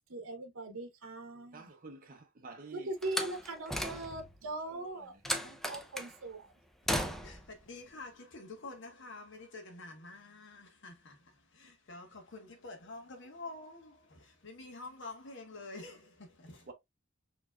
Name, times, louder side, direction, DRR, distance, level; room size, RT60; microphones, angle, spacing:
voice 1, 0.1-1.7 2.7-6.5, right 2 dB, 80° right, 0.8 m, -41 dB
voice 2, 1.5-2.9 5.3-5.5 16.7-16.8, right 3 dB, 45° right, 0.7 m, -49 dB
Slam, 3.0-4.4 5.2-6.1 6.9-7.5, equal, ahead, 0.5 m, -35 dB
voice 3, 7.0-16.7, left 3 dB, 65° left, 1.1 m, -48 dB
4.4 x 3.0 x 2.2 m
head